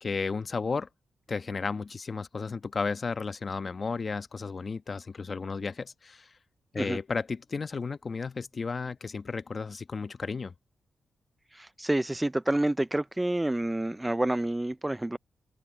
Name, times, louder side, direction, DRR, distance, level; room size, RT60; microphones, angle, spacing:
voice 1, 0.0-0.9 1.3-6.3 6.7-10.5, left 4 dB, 45° left, 1.1 m, -33 dB
voice 2, 11.5-15.2, right 1 dB, 15° right, 0.4 m, -28 dB
cardioid pair, 80°, 0 cm